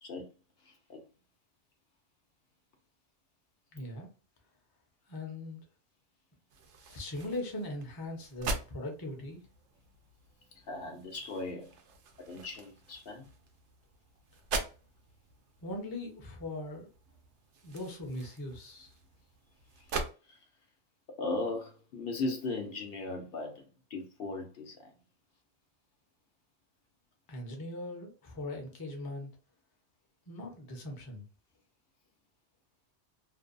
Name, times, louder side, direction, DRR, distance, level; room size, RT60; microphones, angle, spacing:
voice 1, 0.6-1.0 10.6-11.8 12.3-13.3 19.8-19.9 20.3-20.5 21.2-24.9, left 2 dB, 65° left, 0.8 m, -38 dB
voice 2, 3.7-4.1 5.1-5.6 6.9-9.5 15.6-16.9 17.6-18.9 27.3-29.3 30.3-31.2, left 1 dB, 25° left, 0.5 m, -40 dB
sound 1, 6.5-20.1, right 3 dB, 90° right, 0.9 m, -43 dB
2.6 x 2.2 x 2.4 m
omnidirectional pair, 1.2 m